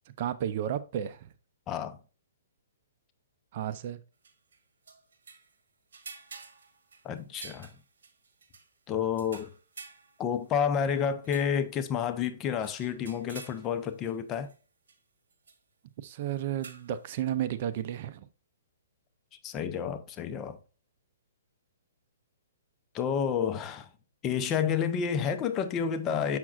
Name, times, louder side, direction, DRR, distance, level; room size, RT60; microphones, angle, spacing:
voice 1, 0.2-1.3 3.5-4.0 16.0-18.3, right 10 dB, 45° right, 0.5 m, -32 dB
voice 2, 1.7-2.0 7.0-7.7 8.9-9.5 10.2-14.5 19.4-20.6 22.9-23.9 24.2-26.4, left 7 dB, 20° left, 0.5 m, -30 dB
sound 1, 4.2-5.6 5.9-8.7 9.2-11.6 12.1-12.2 12.6-14.2 14.4-14.6 14.9-15.0 15.3-15.6 16.6-17.0, right 4 dB, 80° right, 1.5 m, -50 dB
7.3 x 5.9 x 2.4 m
hypercardioid pair, 155°, 0 cm